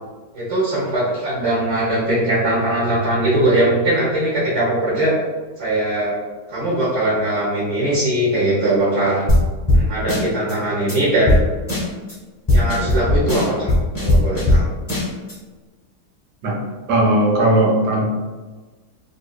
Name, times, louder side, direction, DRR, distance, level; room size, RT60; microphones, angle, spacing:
voice 1, 0.3-5.1 5.6-6.2 6.5-9.2 9.7-11.5 12.5-13.7 14.0-14.6, right 1 dB, 50° right, -7 dB, 1.3 m, -20 dB
sound 1, 9.3-9.4 9.7-9.8 10.1-10.5 10.9-11.0 11.3-11.4 11.7-12.1 12.5-14.6 14.9-15.3, left 1 dB, 20° left, 0.5 m, -17 dB
voice 2, 16.9-18.1, right 1 dB, 85° right, -1 dB, 1.3 m, -17 dB
3.8 x 2.7 x 2.3 m, 1.3 s
omnidirectional pair, 1.8 m